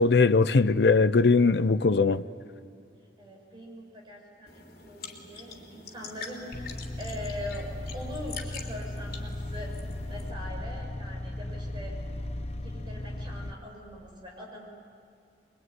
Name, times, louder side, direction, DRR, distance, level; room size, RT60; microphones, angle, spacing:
voice 1, 0.0-2.2, left 4 dB, 70° left, 0.6 m, -20 dB
voice 2, 3.2-9.7 10.1-11.9 12.5-14.7, left 1 dB, 25° right, 6.5 m, -42 dB
sound 1, 4.5-10.3, left 5 dB, 55° left, 3.2 m, -45 dB
sound 2, 6.5-13.5, left 1 dB, 35° left, 0.7 m, -36 dB
24.0 x 23.0 x 9.5 m
head